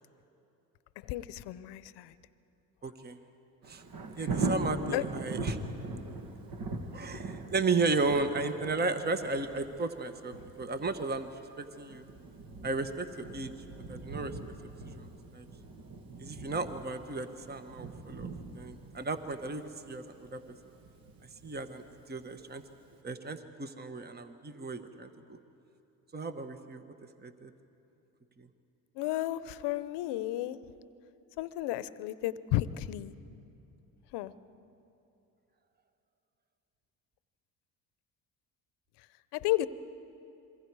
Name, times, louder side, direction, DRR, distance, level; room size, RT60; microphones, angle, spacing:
voice 1, 1.0-2.1 4.2-4.3 4.9-5.0 29.0-30.6 31.4-33.1 34.1-34.3 39.3-39.7, left 15 dB, 75° left, 16 dB, 0.8 m, -33 dB
voice 2, 2.8-3.2 3.7-3.8 4.2-5.6 6.9-12.0 12.6-13.5 13.9-14.3 15.0-15.1 15.3-15.5 16.2-18.3 18.6-20.4 21.4-21.8 22.1-22.6 23.0-25.4 26.1-26.8 27.2-27.5, right 3 dB, 25° right, 9 dB, 1.3 m, -34 dB
Thunder, 3.6-22.4 22.9-23.0, right 3 dB, 55° right, 2.0 m, -41 dB
26.5 x 23.0 x 4.8 m, 2.9 s
supercardioid pair, 65°, 42 cm